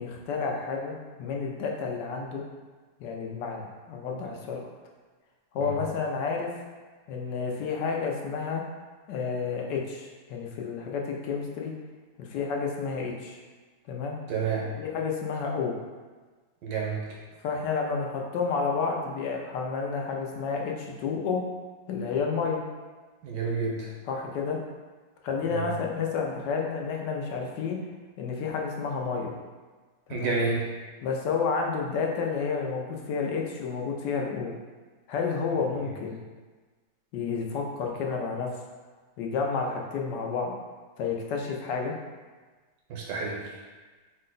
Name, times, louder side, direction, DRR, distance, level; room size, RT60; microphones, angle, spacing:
voice 1, 0.0-2.4 3.0-4.6 5.5-6.5 7.1-8.6 9.1-11.7 12.2-13.4 13.9-14.2 14.8-15.7 17.4-21.4 21.9-22.6 24.0-24.6 25.2-27.8 28.2-29.3 30.1-30.4 31.0-34.5 35.1-36.2 37.1-38.5 39.2-40.5 41.0-41.9, left 5 dB, 85° left, 0 dB, 1.3 m, -30 dB
voice 2, 14.3-14.6 16.6-17.0 23.2-23.9 25.5-25.7 30.1-30.6 42.9-43.4, right 4 dB, 85° right, -3 dB, 1.5 m, -29 dB
4.6 x 2.2 x 3.8 m, 1.3 s
omnidirectional pair, 1.8 m